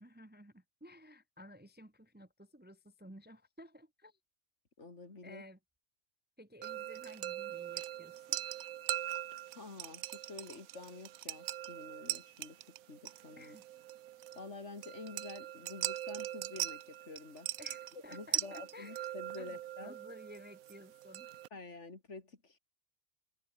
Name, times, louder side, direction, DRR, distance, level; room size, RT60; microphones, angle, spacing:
voice 1, 0.0-4.2 5.2-5.6 6.4-8.4 13.4-13.6 17.6-21.3, left 1 dB, 10° right, 1.1 m, -54 dB
voice 2, 4.8-5.4 9.5-13.6 14.3-17.5 17.9-20.0 21.5-22.6, left 3 dB, 55° left, 3.3 m, -49 dB
sound 1, 6.6-21.5, right 13 dB, 80° right, 1.1 m, -41 dB
omnidirectional pair, 1.4 m